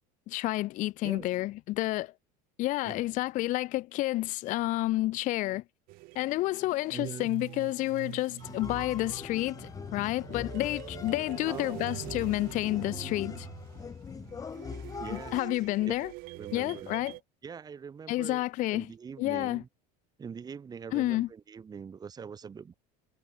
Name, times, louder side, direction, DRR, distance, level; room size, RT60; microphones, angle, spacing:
voice 1, 0.3-2.1 2.6-5.6 6.1-13.5 15.1-16.1 16.5-17.2 18.1-18.9 19.2-19.6 20.9-21.3, left 17 dB, 40° left, 0.5 m, -30 dB
sound 1, 5.9-17.2, right 23 dB, 50° right, 0.4 m, -45 dB
voice 2, 6.9-7.3 11.5-11.9 15.0-15.4 15.9-16.0 16.3-16.9 17.4-19.7 20.2-22.7, right 6 dB, 20° right, 1.9 m, -43 dB
sound 2, 8.4-15.4, left 6 dB, 20° left, 0.9 m, -42 dB
cardioid pair, 150°, 19 cm